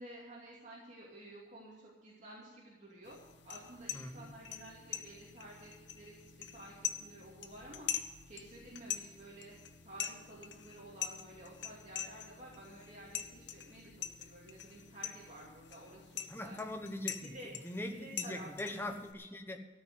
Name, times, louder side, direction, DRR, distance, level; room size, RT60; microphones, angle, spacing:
voice 1, 0.0-3.2 3.4-7.9 8.3-9.5 9.8-13.9 14.2-16.6 17.3-17.5 17.9-18.8, right 1 dB, 40° right, -5 dB, 2.7 m, -52 dB
sound 1, 3.0-19.1, left 10 dB, 70° left, 0.9 m, -44 dB
voice 2, 3.9-4.3 16.3-19.7, left 1 dB, 10° left, 5 dB, 1.1 m, -42 dB
14.0 x 6.3 x 9.5 m, 1.3 s
head